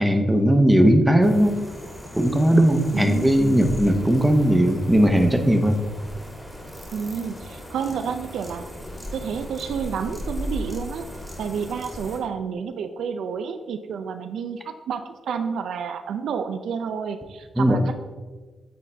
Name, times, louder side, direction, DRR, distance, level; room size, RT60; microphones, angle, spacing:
voice 1, 0.0-1.6 2.1-5.8 17.6-17.9, equal, 5° right, 5 dB, 0.8 m, -18 dB
sound 1, 1.2-12.2, left 1 dB, 10° left, 1.5 m, -37 dB
voice 2, 2.9-3.4 6.9-8.6 9.1-11.1 11.4-18.0, right 6 dB, 80° right, 8 dB, 0.4 m, -30 dB
8.4 x 4.1 x 3.3 m, 1.3 s
cardioid pair, 80°, 0 cm